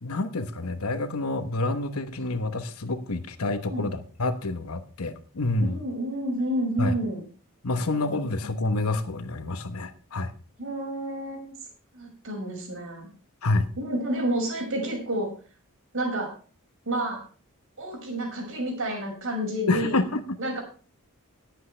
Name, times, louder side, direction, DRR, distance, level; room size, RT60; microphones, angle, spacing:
voice 1, 0.0-5.8 6.8-7.0 7.6-10.3 13.4-13.7 19.7-20.4, left 2 dB, 70° left, 10 dB, 1.1 m, -28 dB
voice 2, 5.6-7.2 8.1-9.0 10.6-11.6 11.9-13.1 13.8-15.3 15.9-16.3 16.9-17.2 17.8-20.0 20.4-20.6, right 1 dB, 65° right, 1 dB, 5.9 m, -30 dB
19.5 x 8.4 x 3.3 m, 0.39 s
head